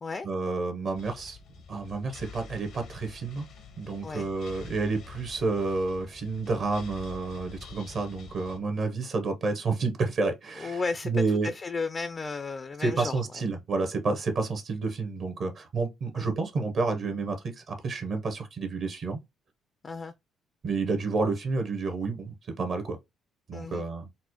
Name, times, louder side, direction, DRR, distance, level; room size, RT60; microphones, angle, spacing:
voice 1, 0.2-1.4 1.7-3.5 3.8-11.5 12.8-19.2 20.6-23.0 23.5-24.1, right 3 dB, 60° right, 0.8 m, -30 dB
sound 1, 0.9-8.6, left 5 dB, 75° left, 0.7 m, -47 dB
voice 2, 10.6-11.1 11.4-13.4 16.1-16.3 19.8-20.1 23.5-23.8, left 4 dB, 35° left, 0.3 m, -34 dB
4.1 x 2.1 x 2.9 m
supercardioid pair, 65°, 0 cm